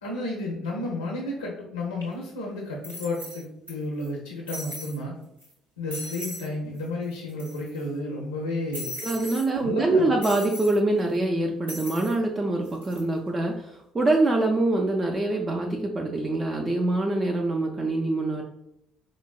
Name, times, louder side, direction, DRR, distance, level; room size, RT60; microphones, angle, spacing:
voice 1, 0.0-5.2 5.8-8.9 9.6-10.1, left 2 dB, 80° left, -2 dB, 0.5 m, -32 dB
sound 1, 2.0-2.1 2.8-3.7 4.0-4.1 4.5-5.0 5.4-5.5 5.9-6.5 6.8-6.9 7.1-7.8 8.7-9.5 10.2-10.8 11.7-12.2 12.6-13.0, left 1 dB, 85° right, 0.8 m, -38 dB
voice 2, 9.0-18.4, right 2 dB, 25° right, 1 dB, 0.4 m, -24 dB
4.4 x 2.0 x 2.3 m, 0.81 s
figure-of-eight pair, 50°, 0 cm